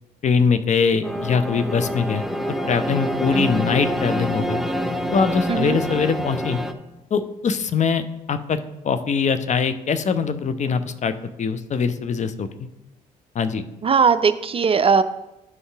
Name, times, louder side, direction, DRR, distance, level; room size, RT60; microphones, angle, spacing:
voice 1, 0.2-2.2 2.7-4.6 5.1-6.6 7.1-8.6 8.8-12.5 13.3-13.6, left 5 dB, 35° left, 11 dB, 0.7 m, -22 dB
sound 1, 1.0-6.7, equal, ahead, 0.7 m, -26 dB
voice 2, 13.8-15.0, right 6 dB, 30° right, 12 dB, 0.4 m, -19 dB
11.0 x 5.4 x 3.4 m, 0.95 s
figure-of-eight pair, 50°, 20 cm